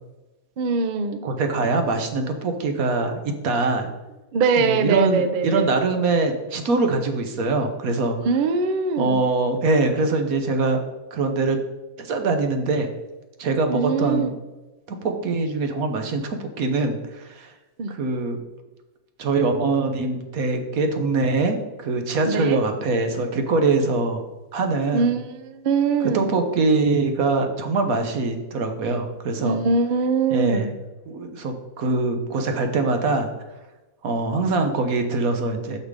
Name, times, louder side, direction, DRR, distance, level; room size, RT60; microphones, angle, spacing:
voice 1, 0.6-1.2 4.3-5.7 8.2-9.3 13.7-14.4 17.8-17.9 22.3-22.6 24.9-26.3 29.4-30.7, right 4 dB, 80° right, 9 dB, 0.4 m, -22 dB
voice 2, 1.2-3.9 4.6-8.2 9.0-10.8 11.1-11.6 12.0-12.9 13.4-14.3 14.9-17.5 17.9-18.4 19.2-24.2 24.5-25.1 26.1-29.6 30.3-30.7 31.1-33.3 34.0-35.8, right 3 dB, 65° right, 5 dB, 1.4 m, -23 dB
6.7 x 5.6 x 4.9 m, 1.1 s
omnidirectional pair, 1.7 m